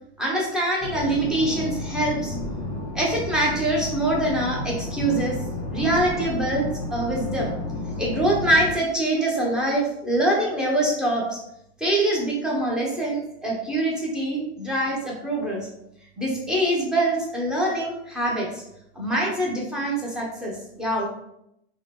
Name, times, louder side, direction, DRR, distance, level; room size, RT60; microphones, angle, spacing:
voice 1, 0.2-2.3 2.9-5.4 5.7-7.5 8.0-11.4 11.8-15.7 16.2-18.6 19.0-21.1, right 1 dB, ahead, -4 dB, 0.7 m, -24 dB
sound 1, 0.8-8.8, left 2 dB, 15° left, 1.5 m, -31 dB
2.9 x 2.9 x 3.3 m, 0.78 s
supercardioid pair, 145°, 32 cm